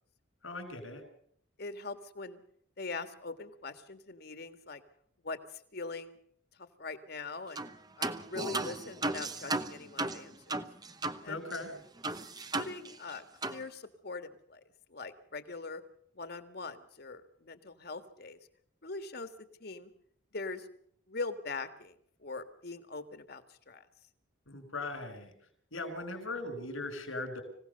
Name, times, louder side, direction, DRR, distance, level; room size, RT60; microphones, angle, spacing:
voice 1, 0.4-1.0 11.2-11.7 24.5-25.3 25.7-27.4, left 2 dB, 85° left, 7 dB, 5.6 m, -39 dB
voice 2, 1.6-2.4 2.8-4.8 5.2-6.2 6.6-7.6 8.0-10.6 11.2-11.4 12.5-14.6 14.9-15.8 16.2-18.4 18.8-19.3 19.6-19.9 20.3-20.7 21.1-23.9, left 3 dB, 55° left, 10 dB, 1.7 m, -42 dB
sound 1, 7.6-7.7 8.0-11.2 11.5-11.6 12.0-13.1 13.4-13.6, right 2 dB, 20° right, 0.9 m, -35 dB
25.5 x 17.0 x 6.8 m, 0.66 s
head